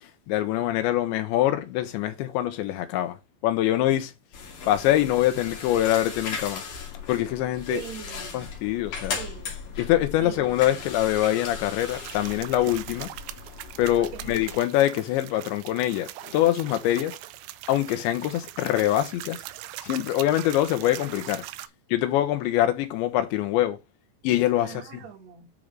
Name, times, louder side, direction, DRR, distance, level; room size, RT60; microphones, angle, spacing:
voice 1, 0.0-3.2 3.4-4.1 4.7-6.6 7.1-7.8 8.3-9.2 9.8-13.1 13.8-17.2 17.7-19.4 19.8-21.4 21.9-23.8 24.2-24.8, left 13 dB, 80° left, 3.4 m, -24 dB
sound 1, 4.3-14.6, left 5 dB, 50° left, 3.7 m, -37 dB
voice 2, 7.7-8.5 9.1-9.6 10.2-10.9 14.0-14.4 24.6-25.5, right 9 dB, 50° right, 2.4 m, -40 dB
sound 2, 11.8-21.7, right 15 dB, 85° right, 3.0 m, -41 dB
10.5 x 5.2 x 3.2 m
omnidirectional pair, 5.2 m